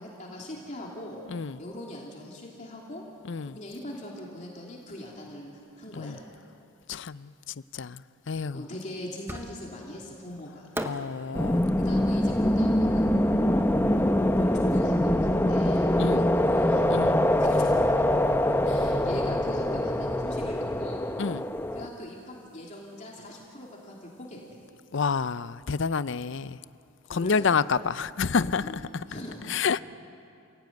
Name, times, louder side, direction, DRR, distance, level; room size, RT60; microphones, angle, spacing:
voice 1, 0.0-1.2 1.6-3.0 3.4-6.2 8.5-10.7 11.8-13.1 14.4-16.9 17.4-17.8 18.6-21.1 21.7-24.6 27.0-27.5 28.4-28.8 29.1-29.6, left 1 dB, 35° left, 2.9 m, -41 dB
voice 2, 1.3-1.6 3.3-3.6 5.9-6.2 6.9-8.0 8.3-8.6 10.8-11.7 16.0-16.3 16.9-17.2 21.2-21.4 24.9-26.6 27.1-29.0 29.5-29.8, left 5 dB, 55° left, 0.5 m, -29 dB
Fireworks, 9.3-9.9 10.7-13.9, right 1 dB, 10° right, 1.0 m, -41 dB
sound 1, 11.3-21.9, left 1 dB, 10° left, 0.9 m, -24 dB
29.0 x 17.0 x 9.4 m
head